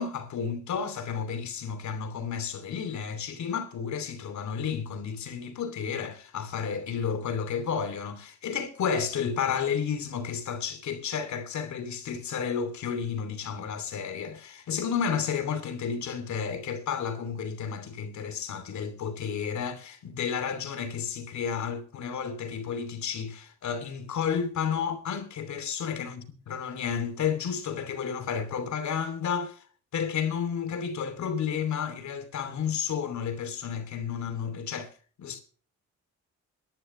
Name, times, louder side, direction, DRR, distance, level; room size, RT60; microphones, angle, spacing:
voice 1, 0.0-29.6 29.9-34.9 35.2-35.4, left 7 dB, 70° left, 2.8 m, -32 dB
23.0 x 11.0 x 3.2 m
cardioid pair, 90°, 30 cm